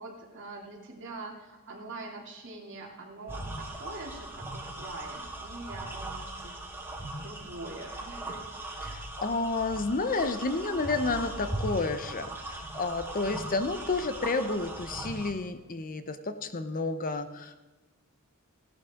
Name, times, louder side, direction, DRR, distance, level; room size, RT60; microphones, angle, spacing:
voice 1, 0.0-6.5 7.2-8.8, right 2 dB, 60° right, 0 dB, 2.7 m, -44 dB
sound 1, 3.3-15.3, right 1 dB, 10° right, 1.7 m, -39 dB
voice 2, 8.8-17.6, left 3 dB, 40° left, 10 dB, 0.8 m, -31 dB
16.5 x 11.5 x 3.7 m, 1.2 s
head